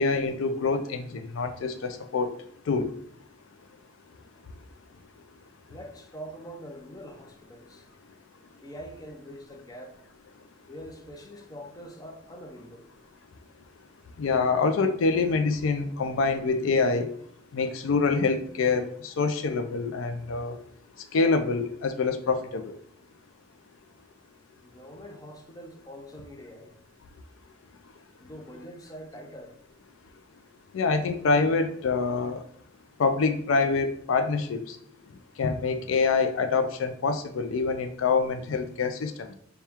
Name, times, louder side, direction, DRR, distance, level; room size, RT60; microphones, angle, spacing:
voice 1, 0.0-2.3 2.7-2.9 14.2-17.1 17.5-20.6 21.1-22.7 30.7-32.4 33.0-34.8 35.4-39.3, left 4 dB, 90° left, 0.4 m, -26 dB
voice 2, 5.7-7.9 8.6-10.0 10.7-12.9 24.6-26.8 28.2-29.6, equal, 20° left, 0.5 m, -44 dB
4.3 x 2.2 x 3.5 m
head